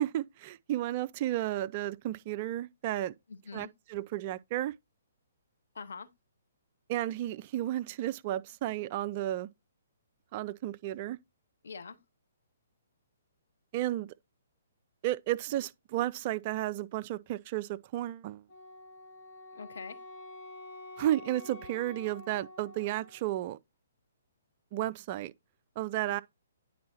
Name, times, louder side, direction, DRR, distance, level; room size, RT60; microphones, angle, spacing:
voice 1, 0.0-3.1 3.5-4.7 6.9-9.5 10.3-11.2 13.7-14.1 15.0-18.4 21.0-23.6 24.7-25.3 25.8-26.2, right 14 dB, 35° right, 0.3 m, -33 dB
voice 2, 3.3-3.7 5.7-6.1 11.6-12.0 19.5-20.0, left 5 dB, 65° left, 0.8 m, -44 dB
Wind instrument woodwind instrument, 18.5-23.3, left 2 dB, 10° left, 3.0 m, -48 dB
9.3 x 4.3 x 2.9 m
figure-of-eight pair, 125°, 0 cm